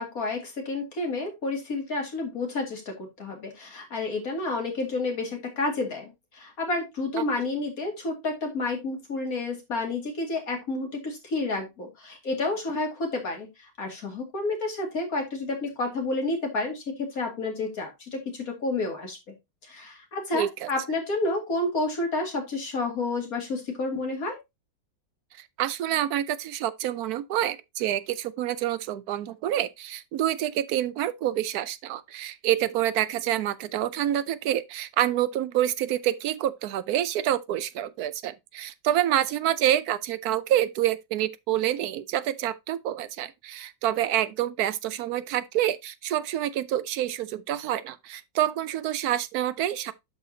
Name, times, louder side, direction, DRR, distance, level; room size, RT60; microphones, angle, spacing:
voice 1, 0.0-19.4 19.6-24.4, left 2 dB, 55° left, 2.6 m, -30 dB
voice 2, 20.3-20.7 25.6-49.9, right 12 dB, 70° right, 0.9 m, -27 dB
12.0 x 4.2 x 2.7 m
omnidirectional pair, 1.9 m